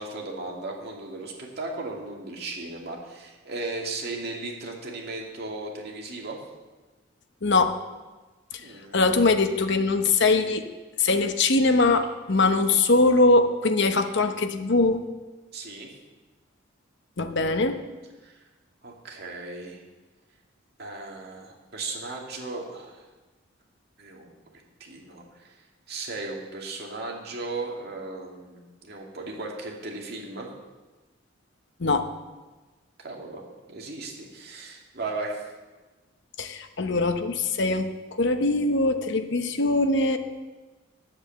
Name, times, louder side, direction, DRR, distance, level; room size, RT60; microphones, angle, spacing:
voice 1, 0.0-6.4 8.6-9.0 15.5-15.9 18.2-18.4 18.8-19.8 20.8-23.0 24.0-24.3 24.8-25.5 25.9-30.5 33.0-33.4 33.7-35.5, right 3 dB, 50° right, -1 dB, 2.2 m, -36 dB
voice 2, 7.4-7.8 8.9-10.7 11.0-15.0 17.2-17.8 31.8-32.1 36.4-37.9 38.2-40.2, left 3 dB, 60° left, 7 dB, 0.9 m, -22 dB
10.0 x 7.9 x 7.7 m, 1.2 s
head